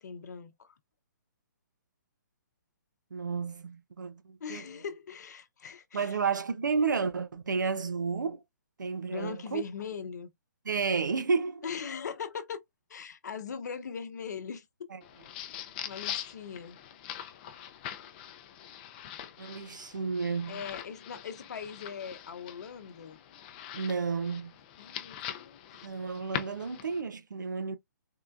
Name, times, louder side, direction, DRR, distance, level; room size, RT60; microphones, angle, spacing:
voice 1, 0.0-0.7 4.4-6.2 9.1-10.3 11.6-12.6 12.9-14.6 15.8-16.8 20.5-23.2 24.8-25.9, left 6 dB, 65° left, 0.7 m, -40 dB
voice 2, 3.1-4.7 5.9-8.4 8.8-9.6 10.6-11.7 14.9-15.0 19.4-20.6 23.7-24.5 25.8-27.8, right 5 dB, 90° right, 0.5 m, -31 dB
sound 1, 15.0-27.0, left 10 dB, 30° left, 0.4 m, -43 dB
3.7 x 2.2 x 2.3 m
hypercardioid pair, 145°, 10 cm